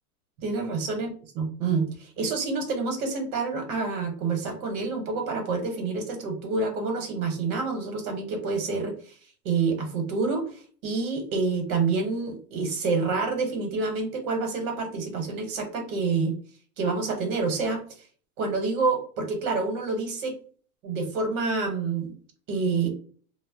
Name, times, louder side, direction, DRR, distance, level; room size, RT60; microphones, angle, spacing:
voice 1, 0.4-1.1 1.3-9.1 9.4-16.4 16.8-17.9 18.4-20.4 20.8-22.2 22.5-22.9, right 4 dB, 65° right, 4 dB, 1.1 m, -28 dB
2.0 x 2.0 x 3.6 m, 0.42 s
supercardioid pair, 120°, 44 cm